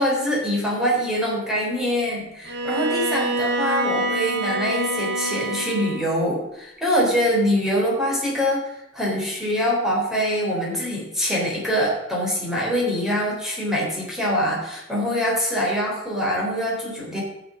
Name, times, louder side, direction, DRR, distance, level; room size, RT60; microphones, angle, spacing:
voice 1, 0.0-17.2, equal, ahead, -4 dB, 3.9 m, -24 dB
Bowed string instrument, 2.4-6.2, right 2 dB, 60° right, 1.5 m, -26 dB
15.0 x 6.9 x 5.2 m, 0.91 s
head